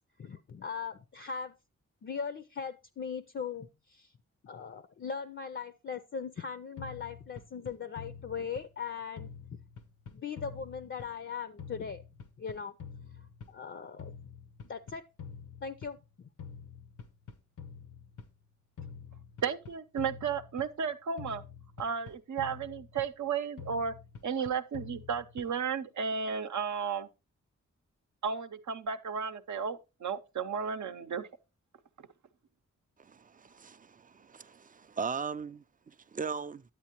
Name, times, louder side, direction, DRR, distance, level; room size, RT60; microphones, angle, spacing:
voice 1, 0.2-1.5 2.0-4.1 4.4-9.3 10.1-12.0 12.4-12.7 13.2-14.1 14.6-15.1 15.6-16.3, left 6 dB, 40° left, 0.5 m, -39 dB
sound 1, 6.8-8.9 9.2-11.3 11.6-13.7 14.0-16.1 16.4-18.4 18.8-20.9 21.2-23.3 23.6-25.7, left 6 dB, 90° left, 0.8 m, -47 dB
voice 2, 19.4-21.4 21.8-23.9 24.2-27.1 28.2-31.3, right 6 dB, 75° right, 0.7 m, -33 dB
voice 3, 33.0-36.6, right 5 dB, 30° right, 0.4 m, -39 dB
9.6 x 8.2 x 2.9 m
cardioid pair, 70°, 30 cm